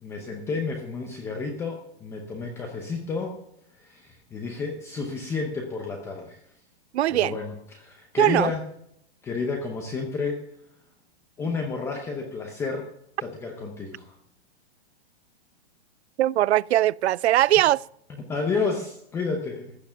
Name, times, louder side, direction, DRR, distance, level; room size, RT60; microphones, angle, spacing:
voice 1, 0.0-3.3 3.7-6.4 7.1-8.6 9.2-10.4 11.4-12.9 13.2-14.2 18.3-19.7, left 4 dB, 10° left, 0.7 m, -31 dB
voice 2, 6.9-7.4 8.2-8.5 16.2-17.8, right 14 dB, 85° right, 0.5 m, -20 dB
14.5 x 9.0 x 5.6 m
hypercardioid pair, 170°, 32 cm